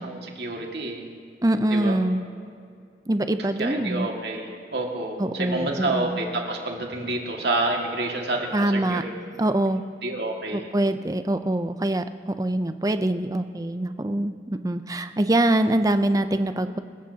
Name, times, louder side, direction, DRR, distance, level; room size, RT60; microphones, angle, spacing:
voice 1, 0.0-1.1 1.7-2.0 3.6-9.1 10.0-10.7, right 2 dB, 70° right, 0 dB, 2.0 m, -28 dB
voice 2, 1.4-2.2 3.1-4.1 5.2-6.2 8.5-9.0 9.4-9.8 10.5-16.8, right 1 dB, 20° right, 10 dB, 0.5 m, -24 dB
26.5 x 15.0 x 2.9 m, 2.3 s
head